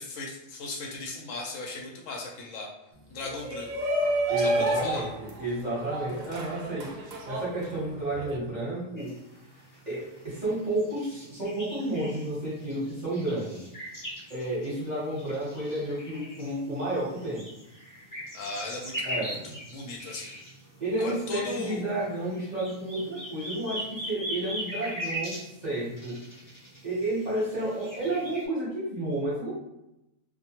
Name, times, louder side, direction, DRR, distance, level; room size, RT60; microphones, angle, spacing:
voice 1, 0.0-2.7 3.1-3.7 4.4-4.5 4.8-5.1 18.3-19.1 19.7-20.4 21.0-21.8, left 2 dB, 75° left, -1 dB, 0.9 m, -36 dB
Shout, 3.2-8.4, right 1 dB, 75° right, 0.4 m, -30 dB
voice 2, 4.3-9.1 9.9-13.6 14.3-17.5 19.0-19.4 20.8-26.2 26.8-29.5, right 1 dB, 35° right, -8 dB, 1.0 m, -31 dB
sound 1, 9.0-28.4, equal, 20° left, 0.6 m, -41 dB
2.4 x 2.2 x 2.8 m, 0.88 s
omnidirectional pair, 1.4 m